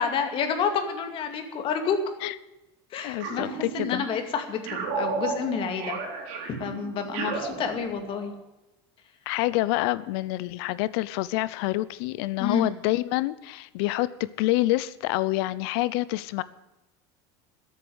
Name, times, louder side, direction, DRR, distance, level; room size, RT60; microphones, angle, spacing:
voice 1, 0.0-2.0 2.9-6.0 6.6-8.3 12.4-12.7, left 6 dB, 40° left, 6 dB, 2.3 m, -29 dB
voice 2, 3.0-4.1 9.3-16.4, left 18 dB, 70° left, 18 dB, 0.7 m, -27 dB
sound 1, 3.2-4.2 4.7-8.3, right 5 dB, 65° right, 3.9 m, -33 dB
13.5 x 8.4 x 9.2 m, 0.99 s
cardioid pair, 150°, 14 cm